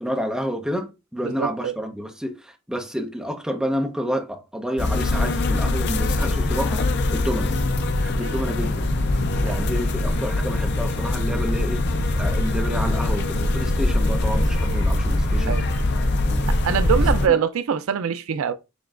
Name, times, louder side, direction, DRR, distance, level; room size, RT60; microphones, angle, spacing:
voice 1, 0.0-6.9 7.1-7.6 8.0-8.9 9.4-11.8 12.2-15.6 16.2-16.5 17.3-17.4, equal, 5° right, 0.6 m, -29 dB
voice 2, 1.2-1.8 8.2-8.5 9.4-9.6 15.5-15.7 16.5-18.5, right 7 dB, 70° right, 0.4 m, -24 dB
sound 1, 4.8-17.3, left 2 dB, 50° left, 0.5 m, -23 dB
sound 2, 7.4-17.1, right 1 dB, 45° right, 2.7 m, -28 dB
7.2 x 3.0 x 2.4 m
head